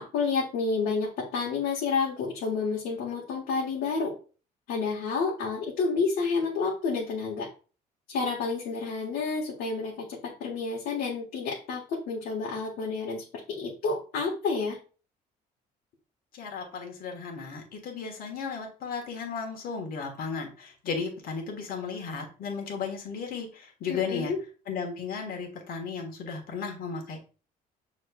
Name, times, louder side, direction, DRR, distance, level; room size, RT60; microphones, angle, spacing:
voice 1, 0.0-4.1 4.7-7.5 8.1-14.8 23.9-24.4, left 4 dB, 75° left, -4 dB, 1.3 m, -30 dB
voice 2, 16.3-24.3 24.7-27.2, left 5 dB, 60° left, 1 dB, 1.4 m, -35 dB
6.4 x 3.1 x 2.3 m, 0.36 s
cardioid pair, 110°, 17 cm